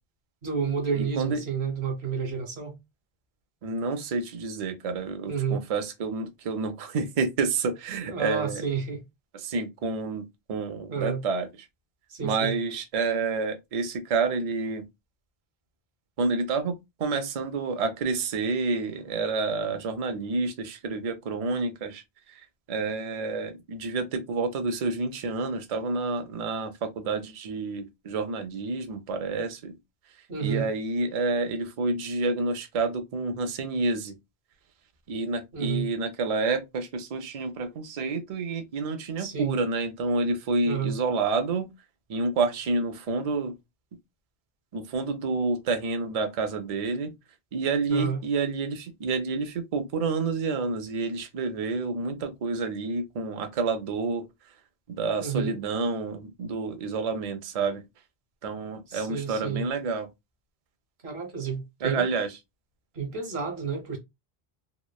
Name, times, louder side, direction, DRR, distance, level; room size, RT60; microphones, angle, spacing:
voice 1, 0.4-2.8 5.3-5.6 8.1-9.0 10.9-11.2 12.1-12.5 30.3-30.7 35.5-35.9 39.2-39.6 40.6-41.0 47.9-48.2 55.2-55.6 58.9-59.6 61.0-62.1 62.9-64.0, right 6 dB, 85° right, 1.1 m, -30 dB
voice 2, 0.9-1.4 3.6-8.6 9.3-11.5 12.2-14.9 16.2-22.0 22.3-29.7 30.4-34.1 35.1-41.7 42.1-43.5 44.7-47.1 47.5-54.3 54.9-57.8 58.4-60.1 61.8-62.3, right 4 dB, 50° right, 0.5 m, -29 dB
3.0 x 2.0 x 2.2 m
omnidirectional pair, 1.0 m